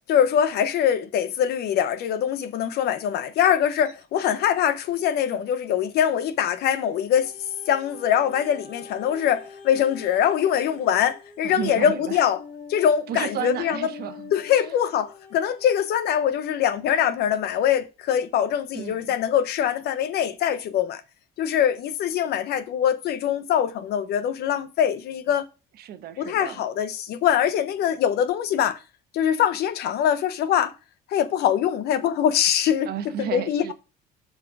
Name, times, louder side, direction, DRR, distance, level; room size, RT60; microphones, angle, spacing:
voice 1, 0.1-7.3 7.7-12.4 12.7-13.9 14.3-21.0 21.4-25.5 26.2-28.8 29.1-30.7 31.1-32.9 33.2-33.7, left 9 dB, 75° left, 0.9 m, -23 dB
sound 1, 7.1-16.2 16.9-17.0, left 6 dB, 45° left, 2.2 m, -44 dB
voice 2, 11.4-12.2 13.1-14.7 18.7-19.1 25.8-26.6 32.9-33.7, right 9 dB, 70° right, 1.0 m, -33 dB
7.3 x 4.2 x 4.7 m
cardioid pair, 110°, 17 cm